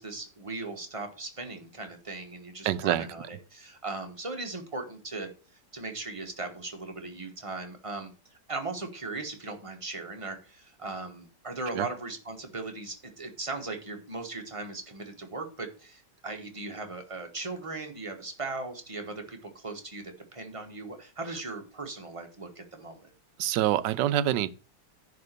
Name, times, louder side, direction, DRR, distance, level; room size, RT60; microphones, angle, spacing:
voice 1, 0.0-5.3 5.7-8.1 8.5-23.1, right 3 dB, 20° right, 1.4 m, -38 dB
voice 2, 2.6-3.1 11.7-11.9 23.4-24.5, right 12 dB, 80° right, 1.2 m, -26 dB
10.5 x 4.1 x 6.7 m
omnidirectional pair, 1.9 m